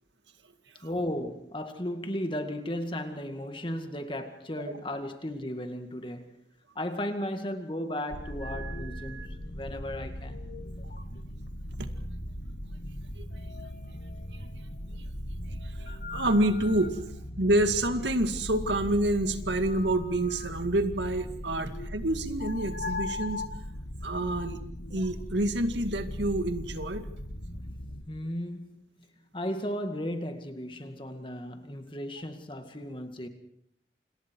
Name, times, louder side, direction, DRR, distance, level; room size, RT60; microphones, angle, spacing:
voice 1, 0.8-6.3 6.8-9.2 9.5-10.4 28.1-28.9 29.3-33.3, left 1 dB, 25° left, 2.1 m, -35 dB
sound 1, 8.1-28.0, left 1 dB, 55° left, 2.2 m, -38 dB
voice 2, 15.6-17.0 17.4-23.4 24.0-24.6 24.9-27.1, right 1 dB, 80° right, 2.2 m, -28 dB
28.5 x 27.5 x 4.7 m
head